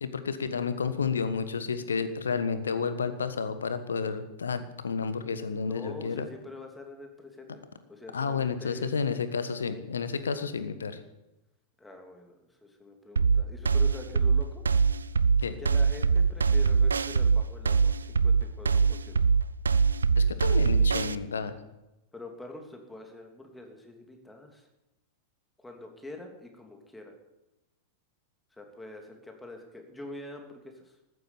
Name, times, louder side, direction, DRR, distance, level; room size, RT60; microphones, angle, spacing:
voice 1, 0.0-6.3 8.1-11.0 15.4-15.6 20.2-21.6, left 5 dB, 70° left, 11 dB, 1.4 m, -31 dB
voice 2, 5.6-8.9 11.8-14.6 15.6-19.3 22.1-24.7 25.6-27.2 28.5-30.9, left 2 dB, 5° left, 3 dB, 3.0 m, -45 dB
sound 1, 13.2-21.2, right 5 dB, 75° right, 0.5 m, -23 dB
15.0 x 12.0 x 7.3 m, 0.97 s
figure-of-eight pair, 90°, 0 cm